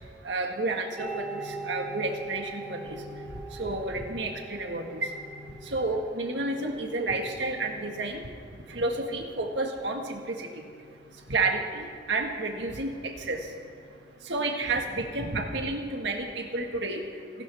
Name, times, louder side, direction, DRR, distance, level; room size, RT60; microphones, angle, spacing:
voice 1, 0.2-3.0 3.5-5.1 5.6-8.2 8.7-10.5 11.3-13.5 14.2-17.0, right 2 dB, 75° right, 3 dB, 1.6 m, -30 dB
sound 1, 1.0-15.7, right 2 dB, ahead, 3.7 m, -44 dB
27.0 x 13.0 x 3.5 m, 2.4 s
head